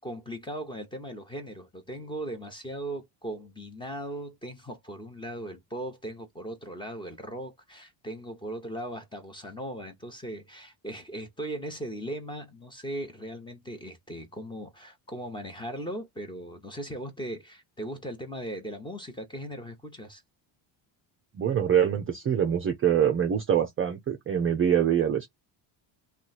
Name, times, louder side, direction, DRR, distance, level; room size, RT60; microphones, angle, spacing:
voice 1, 0.0-20.2, right 1 dB, 10° left, 0.8 m, -38 dB
voice 2, 21.3-25.3, right 9 dB, 30° right, 0.4 m, -24 dB
3.0 x 2.3 x 4.0 m
cardioid pair, 160°, 49 cm